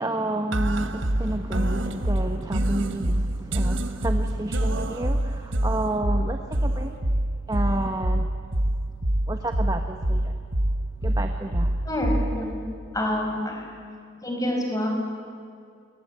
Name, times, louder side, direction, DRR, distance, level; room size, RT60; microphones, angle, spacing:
voice 1, 0.0-7.0 7.5-8.3 9.3-10.3 11.0-11.7, right 1 dB, 20° right, 5 dB, 1.2 m, -30 dB
sound 1, 0.5-12.5, right 1 dB, 70° right, 1.6 m, -26 dB
voice 2, 11.9-12.5 12.9-13.7 14.2-14.9, left 1 dB, 15° left, 1 dB, 5.7 m, -27 dB
26.5 x 21.5 x 9.8 m, 2.3 s
head